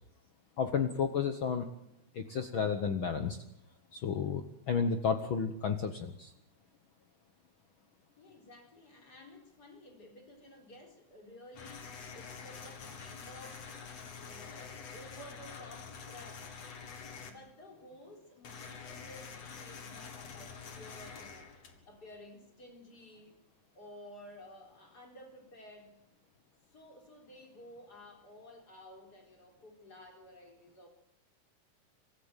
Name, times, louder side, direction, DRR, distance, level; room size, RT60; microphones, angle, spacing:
voice 1, 0.6-1.7 2.1-3.4 3.9-6.3, left 6 dB, 75° left, 7 dB, 1.1 m, -32 dB
voice 2, 8.2-13.7 14.2-16.5 17.2-23.4 23.7-26.0 26.7-30.9, left 1 dB, 25° left, 2 dB, 4.4 m, -53 dB
sound 1, 11.5-17.3 18.4-22.1, left 6 dB, 50° left, 3.1 m, -47 dB
24.5 x 14.5 x 9.0 m, 0.80 s
omnidirectional pair, 4.0 m